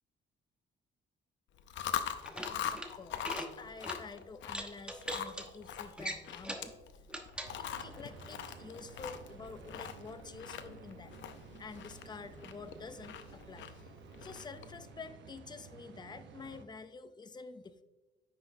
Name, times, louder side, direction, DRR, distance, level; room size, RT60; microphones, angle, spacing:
Chewing mastication, 1.6-14.8, left 9 dB, 70° left, 0.6 m, -43 dB
sound 1, 2.1-2.9 3.2-3.5 3.8-4.0 4.5-5.4 6.0-6.7 7.1-7.5, right 1 dB, 5° right, 1.0 m, -40 dB
voice 1, 2.4-6.7 7.6-11.2 11.6-13.7 14.2-17.8, left 4 dB, 20° left, 11 dB, 0.5 m, -49 dB
sound 2, 7.4-16.6, right 5 dB, 70° right, 0.7 m, -53 dB
9.5 x 6.0 x 2.6 m, 1.2 s
cardioid pair, 90°, 20 cm